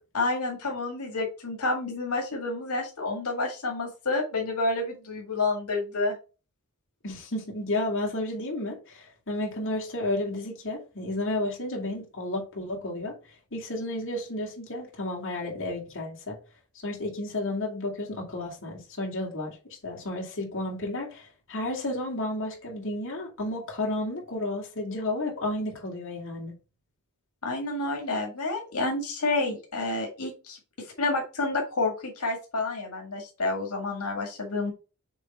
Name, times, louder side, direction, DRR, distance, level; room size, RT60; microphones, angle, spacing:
voice 1, 0.1-6.1 27.4-30.6 31.0-34.7, left 2 dB, 85° left, 2.0 m, -29 dB
voice 2, 7.0-13.1 13.5-16.4 16.7-26.5, left 1 dB, 60° left, 2.4 m, -32 dB
6.8 x 3.8 x 4.3 m
head